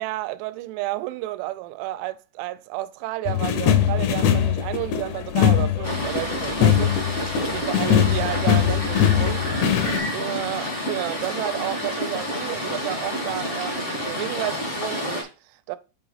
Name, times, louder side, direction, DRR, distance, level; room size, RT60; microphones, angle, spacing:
voice 1, 0.0-7.0 7.4-9.4 10.1-15.8, right 17 dB, 90° right, 3.0 m, -31 dB
sound 1, 3.3-10.0, left 9 dB, 80° left, 2.8 m, -21 dB
sound 2, 5.8-15.2, left 1 dB, 55° left, 0.7 m, -29 dB
9.0 x 3.9 x 4.0 m
omnidirectional pair, 5.4 m